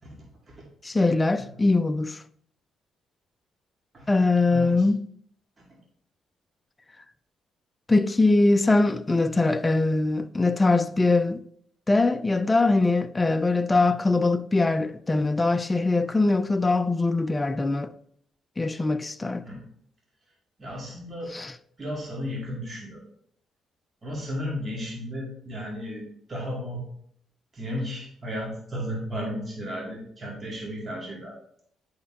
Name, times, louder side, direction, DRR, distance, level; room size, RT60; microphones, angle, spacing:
voice 1, 0.8-2.2 4.1-5.0 7.9-11.4 11.9-17.9 18.6-19.5 21.3-21.5, left 3 dB, 20° left, 0.4 m, -22 dB
voice 2, 4.5-4.9 5.6-5.7 19.4-19.6 20.6-21.3 21.8-23.0 24.0-26.8 27.5-31.3, equal, 35° right, 2.2 m, -34 dB
11.0 x 4.4 x 3.7 m
cardioid pair, 90°, 0 cm